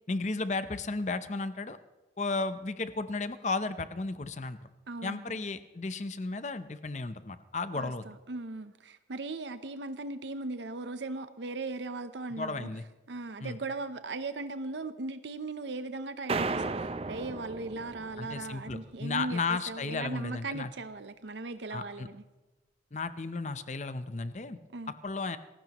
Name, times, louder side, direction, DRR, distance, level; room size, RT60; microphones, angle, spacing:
voice 1, 0.1-1.8 2.2-4.6 5.0-8.0 12.3-12.8 13.4-13.6 18.2-20.7 21.7-22.1 22.9-24.6 25.0-25.4, left 3 dB, 40° left, 11 dB, 0.7 m, -34 dB
voice 2, 4.9-5.3 7.7-12.7 13.1-22.2 24.7-24.9, right 3 dB, 85° right, 10 dB, 0.7 m, -38 dB
sound 1, 16.3-18.7, right 3 dB, 35° right, 0.5 m, -34 dB
28.0 x 15.0 x 3.0 m, 1.2 s
head